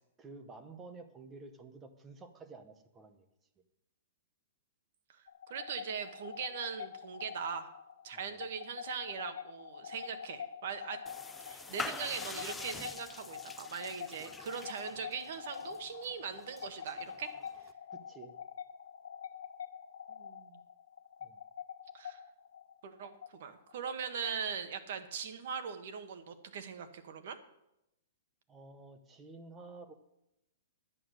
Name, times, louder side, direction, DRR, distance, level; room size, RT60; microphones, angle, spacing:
voice 1, 0.2-3.3 8.1-8.5 17.9-18.4 21.2-21.4 28.5-29.9, right 3 dB, 10° right, 7 dB, 0.9 m, -51 dB
voice 2, 5.1-7.7 8.0-11.0 11.5-17.3 20.2-20.6 21.9-22.2 22.8-27.4, right 7 dB, 50° right, 7 dB, 1.4 m, -41 dB
getting hazey while drinking wine, 5.3-24.7, left 8 dB, 85° left, 1.4 m, -46 dB
sound 1, 11.1-17.7, left 4 dB, 5° left, 0.4 m, -46 dB
11.0 x 9.3 x 6.4 m, 0.84 s
hypercardioid pair, 170°, 0 cm